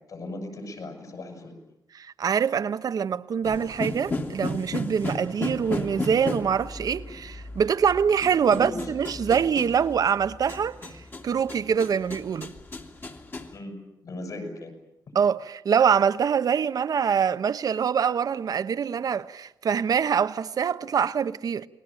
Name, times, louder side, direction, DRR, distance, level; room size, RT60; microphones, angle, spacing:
voice 1, 0.1-1.5 8.5-8.9 13.5-14.7, left 1 dB, 60° left, 7.5 m, -37 dB
voice 2, 1.9-12.5 15.1-21.7, right 7 dB, 65° right, 1.0 m, -24 dB
sound 1, 3.4-13.6, left 2 dB, 30° left, 2.3 m, -35 dB
29.5 x 20.5 x 9.0 m
wide cardioid pair, 150°, 7 cm